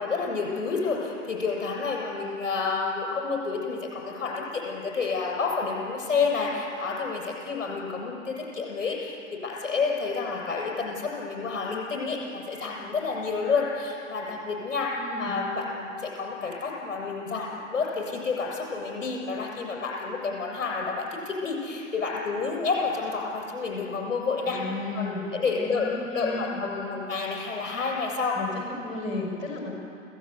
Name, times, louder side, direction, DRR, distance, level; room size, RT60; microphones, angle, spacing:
voice 1, 0.0-14.9 15.2-24.6 24.9-25.9 26.1-28.4, left 4 dB, 70° left, -1 dB, 7.5 m, -29 dB
voice 2, 15.0-15.4 24.4-26.6 28.3-29.7, left 2 dB, 45° left, 0 dB, 5.9 m, -34 dB
29.5 x 16.5 x 8.4 m, 2.6 s
figure-of-eight pair, 100°, 39 cm